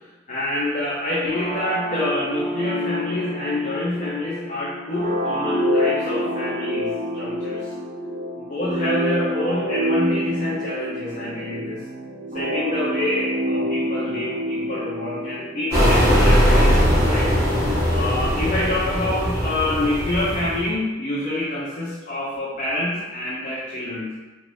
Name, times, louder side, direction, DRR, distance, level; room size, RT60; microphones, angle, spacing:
voice 1, 0.3-7.7 8.4-11.8 12.3-17.3 17.8-24.2, left 1 dB, 45° left, -6 dB, 0.5 m, -27 dB
sound 1, 1.2-15.8, equal, 45° right, 0.5 m, -27 dB
sound 2, 15.7-20.7, equal, 15° right, 1.1 m, -19 dB
2.5 x 2.4 x 3.3 m, 1.2 s
head